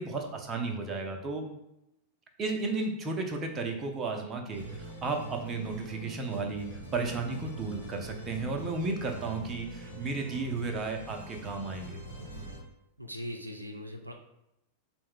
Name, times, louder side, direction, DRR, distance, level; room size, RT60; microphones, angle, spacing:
voice 1, 0.0-1.4 2.4-12.0, right 3 dB, 25° right, 3 dB, 0.6 m, -34 dB
sound 1, 4.5-12.6, right 2 dB, 80° left, 0.9 m, -43 dB
voice 2, 13.0-14.1, equal, 85° right, 3 dB, 0.3 m, -40 dB
4.4 x 2.2 x 3.6 m, 0.85 s
figure-of-eight pair, 90°, 0 cm